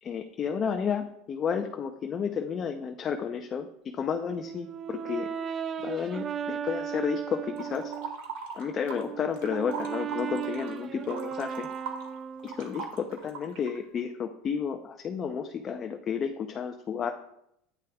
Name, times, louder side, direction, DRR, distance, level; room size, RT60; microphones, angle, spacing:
voice 1, 0.0-5.3 5.8-7.9 8.5-11.7 12.4-17.1, left 7 dB, 35° left, 5 dB, 0.6 m, -32 dB
Brass instrument, 4.2-8.2 8.7-12.8, right 8 dB, 30° right, 0.3 m, -36 dB
sound 1, 7.6-9.1 9.3-13.8, right 5 dB, 75° right, 1.7 m, -40 dB
10.5 x 9.1 x 2.3 m, 0.78 s
supercardioid pair, 125°, 0 cm